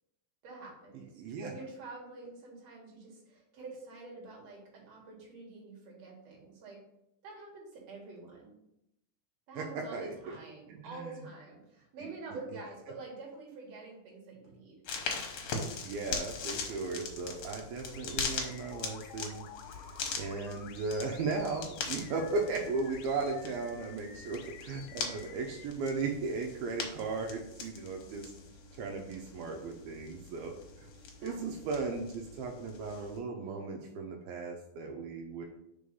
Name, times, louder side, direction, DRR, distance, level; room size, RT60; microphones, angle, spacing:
voice 1, 0.4-6.8 7.2-8.5 9.5-14.8 31.2-31.4, right 3 dB, 50° right, -2 dB, 2.7 m, -47 dB
voice 2, 1.2-1.5 9.6-9.7 9.9-10.4 10.7-11.3 12.0-12.1 15.8-28.3 28.8-30.9 31.2-35.5, right 4 dB, 80° right, 2 dB, 2.5 m, -36 dB
sound 1, 14.8-33.2, left 5 dB, 65° left, 1.9 m, -41 dB
sound 2, 17.9-25.7, left 8 dB, 80° left, 1.8 m, -52 dB
5.0 x 4.7 x 5.3 m, 0.82 s
omnidirectional pair, 4.3 m